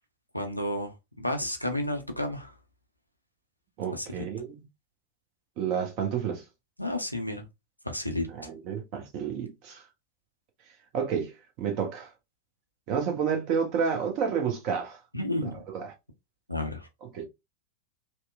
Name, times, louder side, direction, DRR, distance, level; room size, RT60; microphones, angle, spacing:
voice 1, 0.3-2.5 3.9-4.3 6.8-7.4 7.9-8.3 15.1-15.5 16.5-16.9, left 1 dB, 90° left, 0.5 m, -31 dB
voice 2, 3.8-4.6 5.6-6.4 8.3-9.8 10.9-12.1 12.9-15.0 15.4-15.9 17.0-17.2, right 7 dB, 40° right, 0.8 m, -30 dB
2.8 x 2.1 x 2.3 m
figure-of-eight pair, 90°, 0 cm